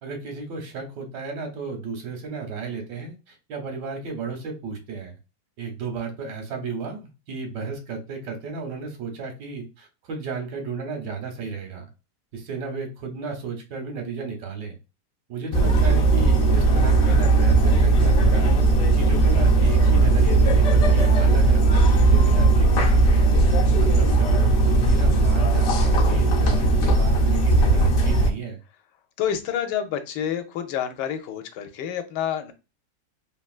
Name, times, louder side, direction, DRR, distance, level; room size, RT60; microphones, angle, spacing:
voice 1, 0.0-5.2 5.6-11.9 12.3-14.8 15.3-18.5 18.9-23.3 23.8-28.6, right 4 dB, 85° right, 3 dB, 1.4 m, -34 dB
sound 1, 15.5-28.3, right 2 dB, 65° left, 0.9 m, -18 dB
voice 2, 29.2-32.5, left 9 dB, 85° left, 8 dB, 1.2 m, -28 dB
3.3 x 2.3 x 2.4 m, 0.29 s
omnidirectional pair, 1.8 m